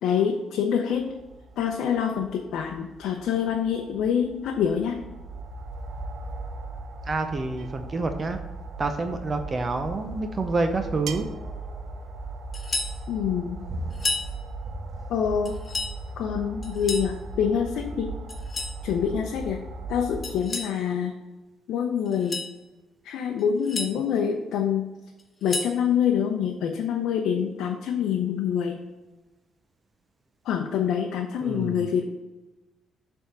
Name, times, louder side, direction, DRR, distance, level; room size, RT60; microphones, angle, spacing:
voice 1, 0.0-1.1 1.6-5.0 13.1-13.6 15.1-15.6 16.2-18.1 18.8-19.6 19.9-21.1 21.7-22.4 23.0-24.9 25.4-28.8 30.4-32.0, left 8 dB, 80° left, 2 dB, 0.6 m, -26 dB
sound 1, 0.9-20.4, right 2 dB, 60° right, 1.2 m, -38 dB
voice 2, 7.0-8.4 8.8-11.3 31.4-31.9, right 3 dB, 35° right, 6 dB, 0.6 m, -28 dB
sound 2, 7.6-7.9 9.4-9.5 11.1-11.5, right 8 dB, 80° right, 0.5 m, -39 dB
sound 3, 12.5-13.0 13.9-14.3 15.4-15.9 16.6-17.1 18.3-18.8 20.2-20.7 22.1-22.5 23.4-23.9 25.2-25.8, left 3 dB, 35° left, 1.1 m, -31 dB
7.2 x 3.5 x 6.4 m, 1.1 s
cardioid pair, 90°, 0 cm